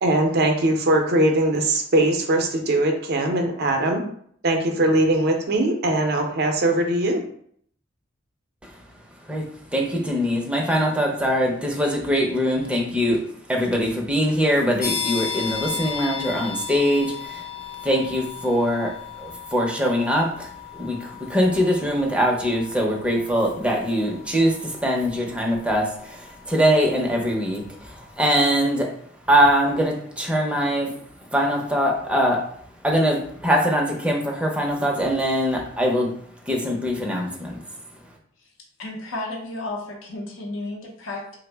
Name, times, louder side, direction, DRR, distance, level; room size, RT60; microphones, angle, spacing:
voice 1, 0.0-4.0 4.4-7.2, right 1 dB, 55° right, 4 dB, 0.5 m, -21 dB
voice 2, 9.7-13.2 13.5-17.4 17.8-28.9 29.3-31.0 31.3-32.4 32.8-36.1 36.5-37.6, equal, 5° right, -1 dB, 0.5 m, -22 dB
sound 1, 14.8-27.3, left 7 dB, 45° left, 0.7 m, -35 dB
voice 3, 38.8-41.4, left 2 dB, 85° left, 0 dB, 0.6 m, -33 dB
3.4 x 2.0 x 3.3 m, 0.63 s
head